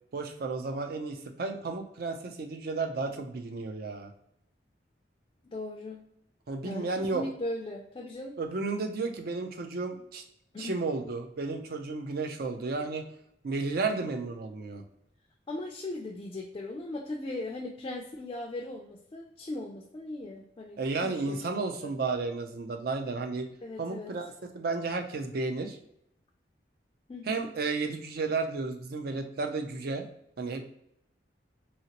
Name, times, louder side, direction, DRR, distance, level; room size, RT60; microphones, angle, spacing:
voice 1, 0.1-4.1 6.5-7.2 8.4-10.2 10.6-13.1 13.4-14.8 20.8-23.5 23.8-25.8 27.2-30.1 30.4-30.6, right 3 dB, 60° right, 5 dB, 0.4 m, -33 dB
voice 2, 5.4-6.0 6.6-8.4 10.5-10.8 15.5-21.9 23.6-24.1 27.1-27.5, left 2 dB, 30° left, 0 dB, 0.3 m, -38 dB
2.8 x 2.8 x 2.8 m, 0.78 s
head